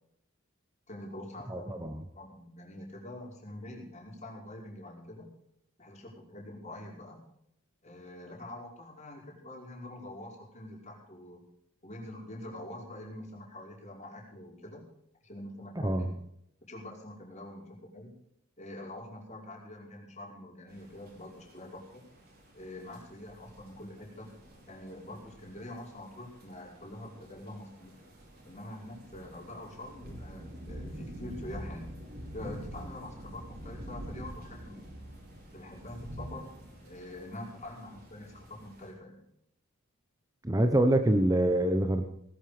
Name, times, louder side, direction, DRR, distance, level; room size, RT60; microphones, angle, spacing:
voice 1, 0.9-1.8 2.2-5.3 5.8-7.2 7.8-11.4 11.8-14.8 15.2-16.1 16.7-18.2 18.6-22.0 22.5-24.3 24.7-27.9 28.5-31.9 32.3-35.0 35.5-36.5 36.8-39.2, left 1 dB, 35° left, -1 dB, 5.2 m, -45 dB
voice 2, 1.5-2.0 15.8-16.1 40.4-42.0, right 1 dB, 15° right, 6 dB, 1.0 m, -25 dB
sound 1, 20.7-38.9, equal, 50° right, 5.6 m, -47 dB
19.0 x 12.0 x 5.1 m, 0.74 s
head